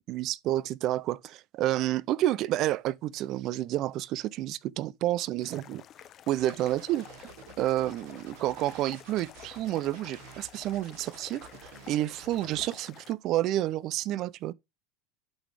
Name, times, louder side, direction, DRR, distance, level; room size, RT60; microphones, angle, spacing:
voice 1, 0.1-5.8 6.3-7.3 7.6-14.5, right 14 dB, 45° right, 0.4 m, -30 dB
sound 1, 5.4-13.1, left 11 dB, 35° left, 0.4 m, -51 dB
sound 2, 6.4-12.7, right 6 dB, 75° right, 3.3 m, -51 dB
11.0 x 4.1 x 3.3 m
supercardioid pair, 140°, 0 cm